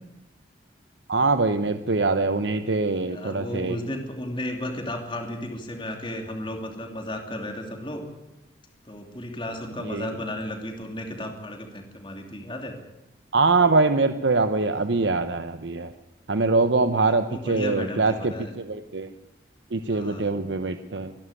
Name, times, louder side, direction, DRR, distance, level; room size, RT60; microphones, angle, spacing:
voice 1, 1.1-3.8 9.8-10.1 13.3-15.9 16.3-19.1 19.7-21.1, right 3 dB, 75° right, 9 dB, 0.9 m, -23 dB
voice 2, 2.9-8.0 8.9-12.8 17.1-18.5 19.9-20.4, left 1 dB, 25° left, 3 dB, 2.8 m, -34 dB
24.5 x 11.5 x 9.9 m, 0.97 s
head